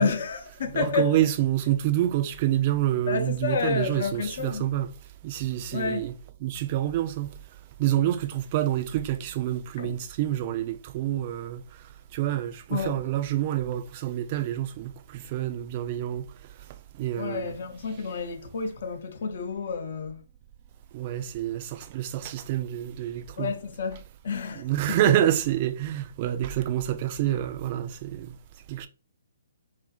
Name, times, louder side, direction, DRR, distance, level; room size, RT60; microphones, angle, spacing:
voice 1, 0.0-1.2 3.1-4.7 5.7-6.1 9.8-10.0 12.7-13.0 17.2-20.2 23.4-25.0, left 5 dB, 55° left, 0.6 m, -30 dB
voice 2, 0.7-4.9 5.2-6.1 6.4-7.3 7.8-11.6 12.1-16.2 17.0-17.6 20.9-23.5 24.5-28.3 28.7-28.9, right 12 dB, 35° right, 0.3 m, -27 dB
2.7 x 2.5 x 2.3 m
figure-of-eight pair, 130°, 0 cm